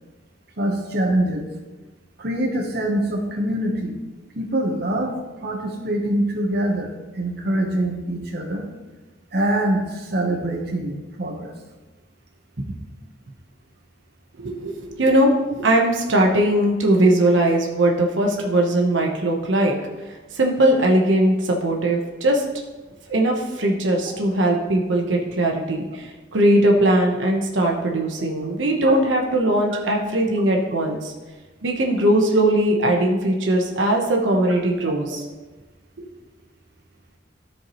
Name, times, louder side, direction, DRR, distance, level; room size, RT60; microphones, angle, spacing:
voice 1, 0.6-1.4 2.2-4.0 4.4-5.2 5.4-8.6 9.3-11.5 28.8-28.9, right 1 dB, 60° right, 1 dB, 1.1 m, -24 dB
voice 2, 14.4-19.8 20.0-22.4 23.1-31.1 31.6-35.2 36.0-36.1, right 1 dB, 90° right, 0 dB, 1.0 m, -20 dB
13.0 x 4.6 x 3.1 m, 1.2 s
head